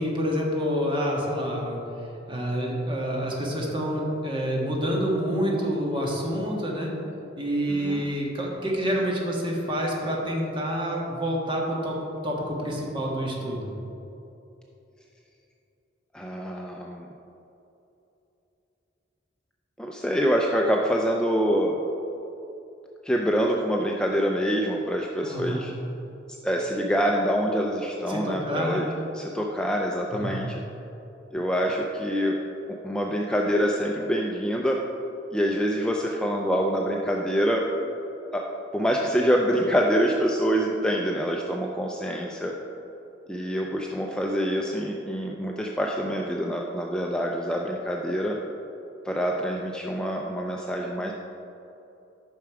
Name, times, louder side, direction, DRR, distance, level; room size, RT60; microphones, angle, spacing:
voice 1, 0.0-1.8 2.3-6.9 7.4-12.0 12.2-13.7 25.2-25.6 28.1-28.8 30.2-30.5, equal, 25° right, -2 dB, 1.5 m, -28 dB
voice 2, 7.7-8.1 16.1-17.1 19.8-21.8 23.0-25.7 26.4-28.9 29.1-30.6 31.3-32.4 32.8-34.8 35.3-37.6 38.3-38.5 38.7-42.5 43.3-48.4 49.0-51.1, equal, 5° left, -1 dB, 0.4 m, -26 dB
9.1 x 6.0 x 4.8 m, 2.9 s
head